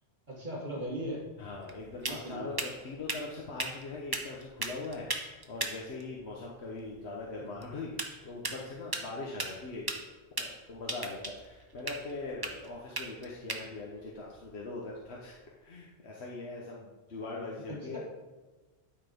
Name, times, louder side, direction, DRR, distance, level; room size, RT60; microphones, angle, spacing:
voice 1, 0.3-1.2 2.0-2.5 7.4-7.6 17.7-18.0, equal, 45° right, -3 dB, 1.7 m, -38 dB
sound 1, 0.8-15.5, right 2 dB, 25° right, 0.9 m, -40 dB
voice 2, 1.4-10.1 10.4-18.0, left 3 dB, 80° left, -3 dB, 1.3 m, -41 dB
12.0 x 4.1 x 5.2 m, 1.3 s
omnidirectional pair, 1.1 m